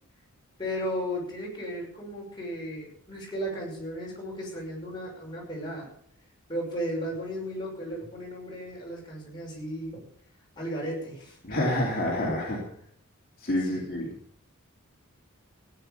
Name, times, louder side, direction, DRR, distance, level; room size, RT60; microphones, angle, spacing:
voice 1, 0.6-5.9 6.5-10.0 10.6-11.4 13.7-14.0, equal, 20° left, -3 dB, 5.9 m, -35 dB
voice 2, 11.4-12.6 13.4-14.1, left 1 dB, 40° left, -4 dB, 2.9 m, -28 dB
15.5 x 9.6 x 6.8 m, 0.65 s
head